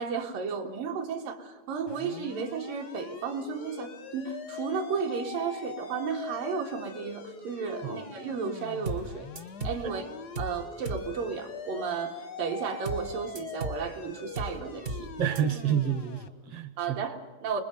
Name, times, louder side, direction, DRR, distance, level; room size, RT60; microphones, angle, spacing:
voice 1, 0.0-9.3 9.6-10.1 10.4-15.1 16.8-17.6, right 6 dB, 80° right, 3 dB, 3.5 m, -33 dB
sound 1, 1.9-16.3, left 6 dB, 75° left, 0.9 m, -43 dB
sound 2, 8.9-9.1 9.4-9.8 10.4-10.6 10.9-11.1 12.9-13.1 13.4-13.8 14.4-14.6 14.9-15.1 15.4-15.5, right 2 dB, 40° right, 0.9 m, -35 dB
voice 2, 15.2-17.0, right 8 dB, 60° right, 10 dB, 1.7 m, -29 dB
27.0 x 21.0 x 5.4 m, 1.4 s
omnidirectional pair, 3.9 m